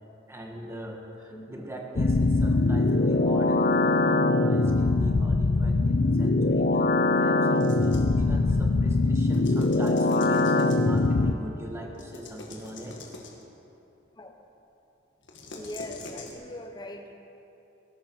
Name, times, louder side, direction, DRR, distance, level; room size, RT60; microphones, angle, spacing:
voice 1, 0.3-13.0, right 1 dB, 15° right, 1 dB, 1.4 m, -41 dB
sound 1, 2.0-11.3, left 2 dB, 50° left, 0.5 m, -22 dB
voice 2, 2.2-2.6 14.2-14.3 15.6-17.1, left 1 dB, 20° left, 4 dB, 1.0 m, -41 dB
sound 2, 7.6-8.2 9.2-11.1 11.9-13.5 15.2-16.3, left 2 dB, 75° left, 1.8 m, -44 dB
19.0 x 11.0 x 4.6 m, 2.9 s
head